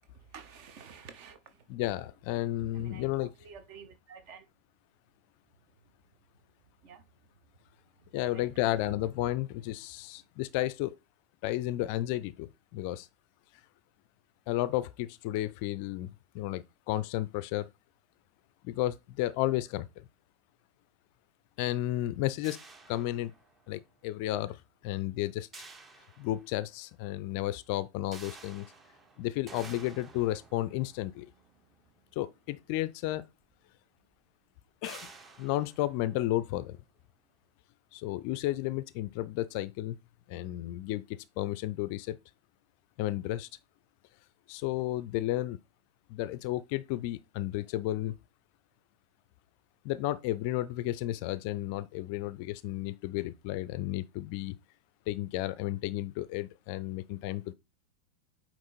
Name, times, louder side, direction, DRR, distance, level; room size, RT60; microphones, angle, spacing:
voice 1, 0.1-1.7 2.7-4.5 6.8-7.1 8.1-8.8, right 6 dB, 45° right, 1.1 m, -50 dB
voice 2, 1.7-3.3 8.1-10.9 11.4-13.1 14.5-17.7 18.6-20.1 21.6-22.6 22.9-23.3 23.7-25.5 26.2-28.7 29.2-31.3 32.2-33.2 34.8-35.1 35.4-36.8 37.9-40.0 40.3-41.0 41.4-42.2 43.0-43.5 44.5-45.6 46.1-48.1 49.8-54.6 55.1-57.5, left 15 dB, 45° left, 0.4 m, -32 dB
sound 1, 22.4-23.8 25.5-26.8 28.1-32.6 33.5-33.6 34.0-34.1 34.8-36.8, right 4 dB, 20° right, 1.0 m, -52 dB
8.6 x 3.0 x 4.1 m
figure-of-eight pair, 90°, 0 cm